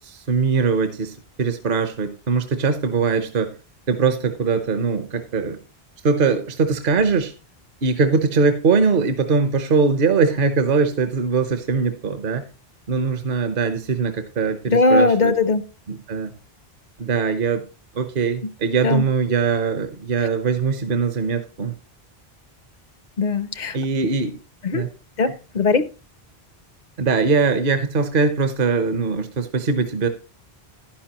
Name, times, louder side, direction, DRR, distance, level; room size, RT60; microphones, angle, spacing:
voice 1, 0.0-3.5 3.9-5.6 6.0-7.3 7.8-12.5 12.9-15.3 15.9-16.3 17.0-17.7 17.9-21.7 23.7-24.4 24.7-24.9 27.0-30.1, right 5 dB, 55° right, 8 dB, 1.0 m, -21 dB
voice 2, 14.7-15.6 18.8-19.0 23.2-23.8 24.6-24.8 25.2-25.9, left 3 dB, 50° left, 14 dB, 0.7 m, -19 dB
11.0 x 10.5 x 2.9 m, 0.33 s
omnidirectional pair, 1.1 m